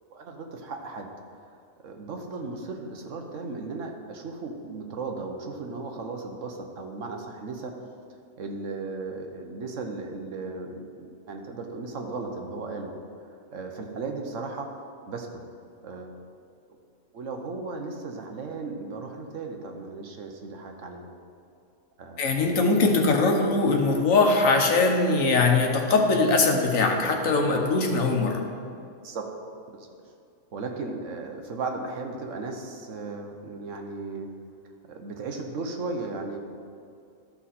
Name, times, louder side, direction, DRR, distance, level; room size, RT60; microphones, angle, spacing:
voice 1, 0.1-1.1 1.3-1.5 1.8-7.7 8.4-12.9 13.5-14.7 15.1-15.4 15.8-16.1 17.1-21.0 22.0-22.6 29.0-29.3 29.7-29.9 30.5-34.3 34.9-36.4, right 3 dB, 70° right, 3 dB, 1.2 m, -36 dB
voice 2, 22.2-28.4, left 3 dB, 75° left, 3 dB, 1.4 m, -21 dB
13.0 x 5.7 x 4.2 m, 2.4 s
omnidirectional pair, 1.4 m